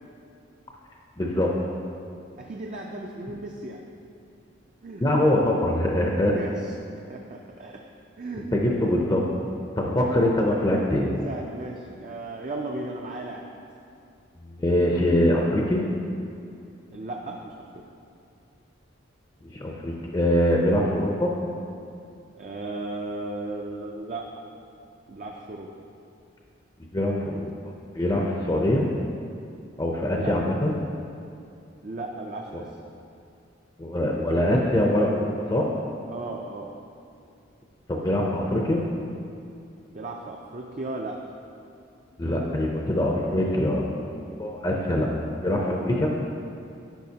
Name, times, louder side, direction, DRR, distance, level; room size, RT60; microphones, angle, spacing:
voice 1, 1.2-1.5 5.0-6.3 8.5-9.2 9.8-11.1 14.5-15.8 19.4-21.3 26.9-27.5 27.9-28.8 29.8-30.7 33.8-35.7 37.9-38.8 42.2-45.1 45.4-46.1, left 1 dB, 20° left, -2 dB, 0.5 m, -23 dB
voice 2, 2.4-3.8 4.8-5.1 6.2-6.7 7.1-7.8 8.2-8.5 10.1-10.2 11.0-13.4 16.9-17.8 22.4-24.3 25.1-25.7 30.1-30.3 31.8-32.7 36.1-36.7 39.9-41.2, right 2 dB, 40° right, 0 dB, 0.4 m, -35 dB
10.5 x 6.0 x 2.8 m, 2.5 s
head